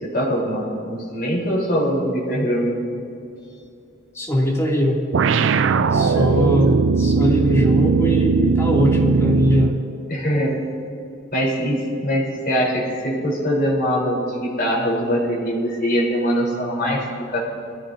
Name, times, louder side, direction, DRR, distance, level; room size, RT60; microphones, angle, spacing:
voice 1, 0.0-2.8 6.0-6.3 6.6-6.7 10.1-10.6 11.3-17.0 17.3-17.4, equal, 55° left, -3 dB, 3.9 m, -22 dB
voice 2, 4.1-5.0 5.9-9.8, equal, 15° left, -4 dB, 2.7 m, -21 dB
sound 1, 5.1-9.9, right 5 dB, 85° right, 0.4 m, -18 dB
21.5 x 14.5 x 2.8 m, 2.7 s
head